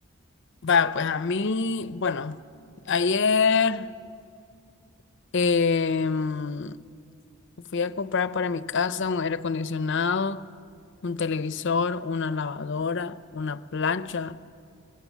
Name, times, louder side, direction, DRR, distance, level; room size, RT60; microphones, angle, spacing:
voice 1, 0.6-2.4 2.9-3.9 5.3-6.8 7.7-10.5 11.0-14.4, left 5 dB, 55° left, 0.6 m, -25 dB
26.0 x 21.5 x 7.4 m
head